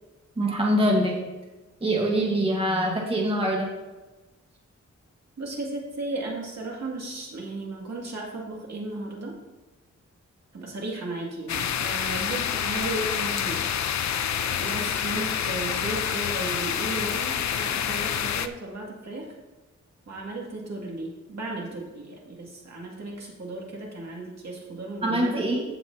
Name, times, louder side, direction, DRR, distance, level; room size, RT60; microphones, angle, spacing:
voice 1, 0.4-1.2 1.8-3.7 25.0-25.6, equal, 20° right, -2 dB, 1.4 m, -24 dB
voice 2, 5.4-9.4 10.5-13.7 14.4-19.3 20.1-25.5, right 2 dB, 65° right, -2 dB, 2.4 m, -35 dB
sound 1, 11.5-18.5, left 8 dB, 70° left, 0.5 m, -27 dB
15.5 x 6.2 x 2.8 m, 1.1 s
wide cardioid pair, 155°, 29 cm